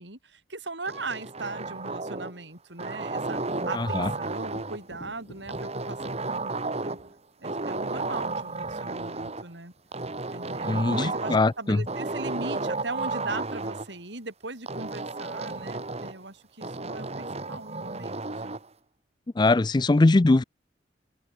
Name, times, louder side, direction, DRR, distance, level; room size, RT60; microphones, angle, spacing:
voice 1, 0.0-7.0 7.4-9.7 10.3-18.6, right 3 dB, 70° right, 5.3 m, -39 dB
sound 1, 0.9-2.4 2.8-4.9 5.5-7.1 7.4-9.4 9.9-11.5 11.9-13.9 14.7-16.2 16.6-18.7, right 3 dB, 35° right, 2.6 m, -33 dB
voice 2, 3.7-4.1 10.6-11.8 19.4-20.4, left 2 dB, 25° left, 0.4 m, -21 dB
Thunder, 3.9-11.6 15.3-15.4 15.8-16.7, equal, 45° left, 6.0 m, -53 dB
head